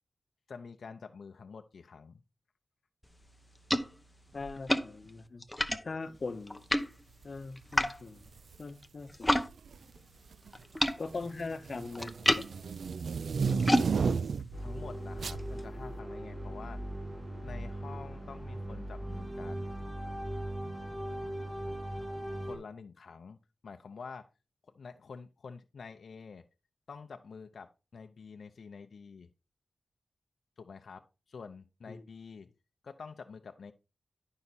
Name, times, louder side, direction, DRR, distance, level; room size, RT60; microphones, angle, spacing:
voice 1, 0.5-2.2 14.6-16.8 17.4-19.7 22.4-23.4 23.6-24.3 24.6-26.4 26.9-29.3 30.6-32.5 32.8-33.7, left 5 dB, 75° left, 0.6 m, -48 dB
sound 1, 3.0-9.5 9.8-15.6, left 1 dB, 10° left, 0.8 m, -34 dB
voice 2, 4.3-5.4 5.8-6.6 7.2-8.3 8.6-9.4 10.9-12.1 31.9-32.0, left 3 dB, 50° left, 0.8 m, -40 dB
sound 2, 8.3-8.5 9.5-10.0 10.3-14.6 15.2-15.4, right 5 dB, 85° right, 0.3 m, -33 dB
sound 3, 14.5-22.6, right 1 dB, 35° right, 3.1 m, -39 dB
11.0 x 5.7 x 4.1 m
wide cardioid pair, 130°, 0 cm